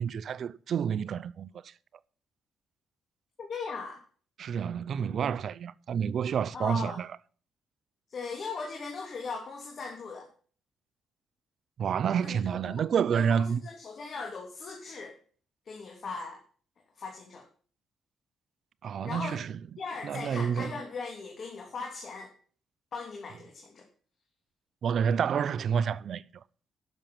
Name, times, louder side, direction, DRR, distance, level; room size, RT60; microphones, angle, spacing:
voice 1, 0.0-1.5 4.4-7.1 11.8-13.6 18.8-19.6 20.0-20.8 24.8-26.2, right 7 dB, 60° right, 0.5 m, -29 dB
voice 2, 3.4-4.0 6.5-7.0 8.1-10.3 12.2-12.4 12.7-12.8 13.1-15.2 15.7-16.4 17.0-17.5 19.0-19.4 19.8-22.3 22.9-23.8, left 4 dB, 50° left, 2.6 m, -39 dB
10.5 x 7.2 x 7.4 m
cardioid pair, 90°, 0 cm